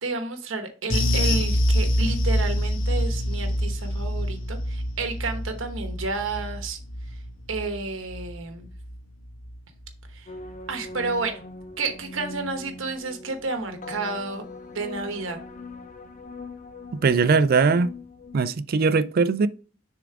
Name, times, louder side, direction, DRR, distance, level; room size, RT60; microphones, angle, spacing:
voice 1, 0.0-6.8 7.5-8.7 10.1-10.3 10.7-11.4 11.8-15.4, right 3 dB, 85° right, 1.0 m, -31 dB
sound 1, 0.9-9.6 9.8-10.1 10.5-10.6, equal, 75° left, 1.2 m, -26 dB
sound 2, 10.3-18.4, left 2 dB, 40° left, 0.6 m, -41 dB
voice 2, 17.0-17.9 18.3-19.5, right 4 dB, 50° right, 0.4 m, -20 dB
6.7 x 3.7 x 4.8 m
head